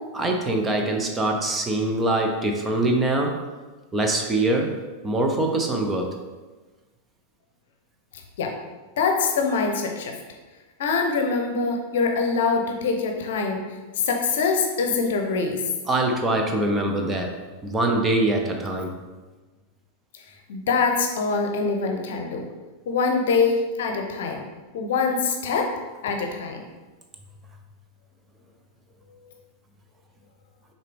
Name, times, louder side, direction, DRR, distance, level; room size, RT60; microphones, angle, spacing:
voice 1, 0.1-3.4 3.9-4.8 5.0-6.1 15.9-17.4 17.6-18.9, right 2 dB, 15° right, 2 dB, 0.8 m, -23 dB
voice 2, 9.0-10.2 10.8-13.6 14.0-15.6 20.5-22.5 22.9-24.4 24.7-25.7 26.0-26.6, left 4 dB, 55° left, 4 dB, 0.8 m, -24 dB
6.6 x 4.1 x 3.6 m, 1.3 s
figure-of-eight pair, 90°, 0 cm